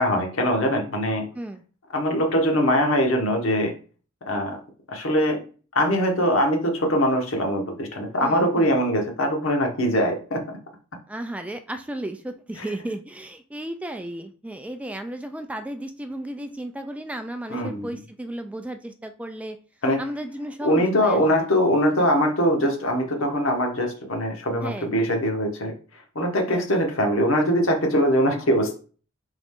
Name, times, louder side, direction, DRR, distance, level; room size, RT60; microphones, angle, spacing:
voice 1, 0.0-1.3 1.9-3.7 4.3-4.6 4.9-5.4 5.7-10.4 17.5-17.9 19.8-20.0 20.6-25.7 26.1-28.8, equal, 90° left, 2 dB, 1.1 m, -22 dB
voice 2, 8.2-8.8 11.1-19.6 20.0-21.4 24.6-24.9 26.5-26.7, right 1 dB, 5° right, 7 dB, 0.3 m, -34 dB
3.8 x 3.1 x 3.6 m, 0.39 s
head